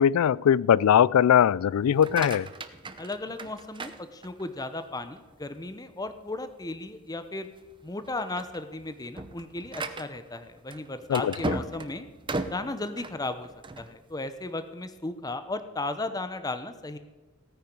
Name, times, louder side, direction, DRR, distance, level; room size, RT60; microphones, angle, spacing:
voice 1, 0.0-2.5 11.1-11.6, left 9 dB, 90° left, 0.3 m, -21 dB
sound 1, 1.8-4.7 5.2-5.6 6.1-6.2 6.6-6.8 7.4-7.7 8.0-13.9, right 2 dB, 20° right, 0.7 m, -37 dB
voice 2, 3.0-7.5 7.8-12.1 12.5-13.5 13.8-17.0, left 2 dB, 15° left, 0.6 m, -35 dB
16.5 x 9.4 x 5.3 m
head